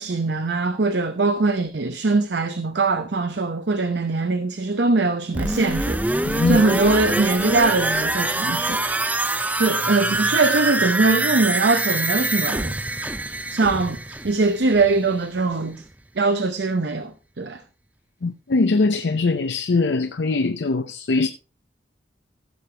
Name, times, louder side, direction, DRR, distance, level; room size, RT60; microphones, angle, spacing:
voice 1, 0.0-6.0 6.5-8.8 9.5-12.7 13.5-15.8 16.2-17.6, right 3 dB, 75° right, 0.8 m, -22 dB
sound 1, 5.3-15.1 15.4-15.5, right 2 dB, 10° right, 0.5 m, -24 dB
voice 2, 6.2-6.6 18.2-21.3, left 3 dB, 80° left, 0.6 m, -21 dB
15.5 x 6.9 x 3.3 m
head